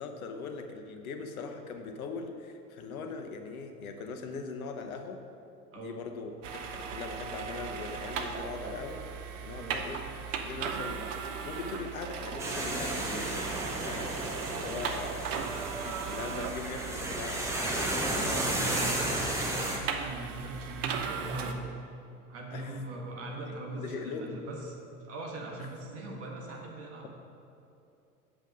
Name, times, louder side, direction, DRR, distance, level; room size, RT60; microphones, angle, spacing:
voice 1, 0.0-5.2 5.8-9.0 9.4-11.1 11.5-13.3 13.8-14.2 14.5-15.4 15.8-17.8 22.5-22.8 23.4-24.4 25.6-25.7, left 4 dB, 65° left, 5 dB, 0.9 m, -40 dB
sound 1, 6.4-21.5, right 6 dB, 55° right, 0.8 m, -38 dB
sound 2, 12.4-19.8, right 1 dB, 5° right, 0.8 m, -33 dB
voice 2, 15.3-15.7 18.3-21.6 22.3-24.7 25.1-27.1, right 2 dB, 30° right, -1 dB, 1.4 m, -40 dB
7.4 x 5.2 x 5.1 m, 2.7 s
figure-of-eight pair, 85°, 46 cm